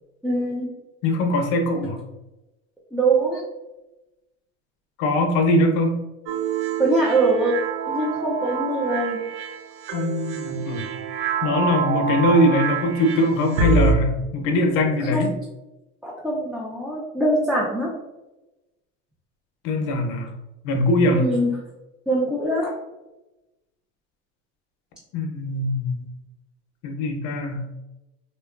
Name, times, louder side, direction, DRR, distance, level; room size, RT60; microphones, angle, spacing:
voice 1, 0.2-0.7 1.8-1.9 2.9-3.4 6.8-7.5 7.9-9.2 15.0-15.3 16.0-17.9 21.1-21.5 22.1-22.7, right 2 dB, ahead, -6 dB, 0.4 m, -23 dB
voice 2, 1.0-2.0 5.0-6.0 9.9-10.9 11.4-15.3 19.6-20.3 20.6-21.2 25.1-26.1 26.8-27.6, left 1 dB, 75° left, 4 dB, 0.6 m, -21 dB
sound 1, 6.3-13.9, right 4 dB, 75° right, 0.5 m, -26 dB
2.8 x 2.2 x 2.3 m, 1.0 s
supercardioid pair, 95°, 34 cm